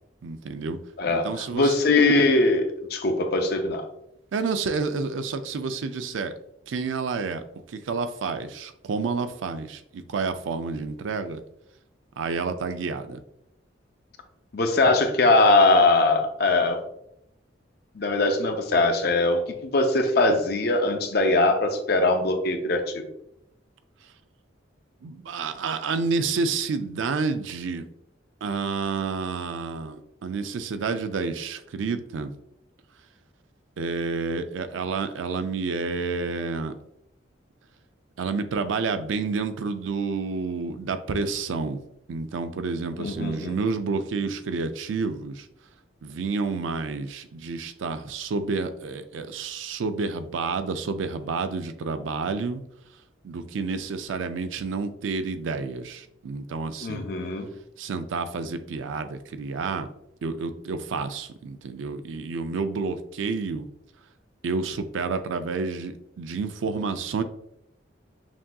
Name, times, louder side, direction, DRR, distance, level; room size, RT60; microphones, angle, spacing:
voice 1, 0.2-0.8 1.1-1.8 4.3-6.3 6.7-7.4 7.7-11.4 12.2-13.2 25.0-27.9 28.4-32.3 33.8-36.7 38.2-41.8 42.1-45.5 46.0-52.6 53.2-57.1 57.8-59.9 60.2-63.7 64.4-67.2, right 4 dB, 85° right, 9 dB, 0.4 m, -29 dB
voice 2, 1.0-3.9 14.5-16.8 17.9-23.1 43.0-43.6 56.8-57.5, left 2 dB, 55° left, 5 dB, 0.6 m, -21 dB
5.9 x 2.7 x 2.3 m, 0.78 s
head